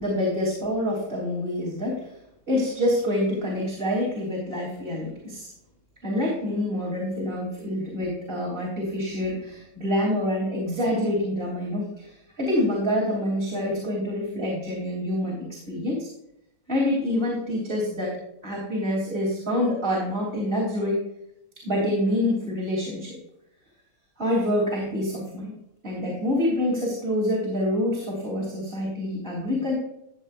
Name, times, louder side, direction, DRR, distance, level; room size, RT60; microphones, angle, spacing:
voice 1, 0.0-2.1 2.5-5.5 6.0-16.1 16.7-18.2 18.4-21.0 21.6-23.2 24.2-25.5 25.8-29.7, left 1 dB, 25° right, -3 dB, 3.5 m, -26 dB
14.0 x 8.1 x 2.5 m, 0.78 s
omnidirectional pair, 2.2 m